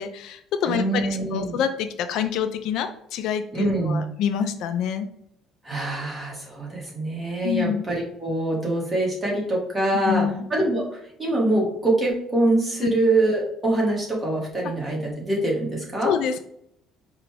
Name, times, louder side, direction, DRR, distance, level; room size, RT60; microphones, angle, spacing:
voice 1, 0.0-5.1 7.4-7.9 10.1-10.4 12.8-13.0 16.0-16.4, left 8 dB, 70° left, 9 dB, 0.3 m, -26 dB
voice 2, 0.7-1.6 3.5-4.0 5.6-16.1, right 2 dB, 20° right, -3 dB, 1.5 m, -24 dB
4.9 x 2.3 x 3.2 m, 0.73 s
cardioid pair, 125°, 0 cm